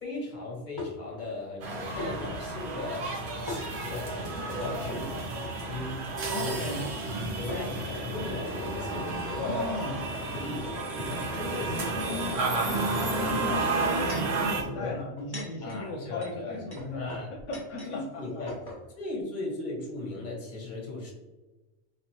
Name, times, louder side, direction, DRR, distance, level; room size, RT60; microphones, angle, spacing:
voice 1, 0.0-3.1 3.5-6.9 7.4-9.7 10.2-12.2 14.7-15.0 15.6-16.6 16.9-17.3 17.9-18.5 19.0-21.1, left 2 dB, 40° left, -1 dB, 1.3 m, -37 dB
sound 1, 0.8-1.2 2.0-2.1 3.5-4.1 4.6-4.7 6.0-6.1 6.5-6.6 7.5-9.1 9.9-10.0 10.6-10.8 11.3-12.5 13.6-14.4 15.0-17.9 18.2-18.3 18.5-18.8, left 2 dB, 20° left, 0.9 m, -41 dB
sound 2, 1.6-14.6, right 2 dB, 65° right, 1.0 m, -32 dB
voice 2, 4.6-5.0 6.3-6.8 9.4-10.1 12.5-18.4, left 2 dB, 75° left, 0 dB, 0.9 m, -37 dB
4.1 x 3.3 x 2.9 m, 1.1 s
omnidirectional pair, 1.3 m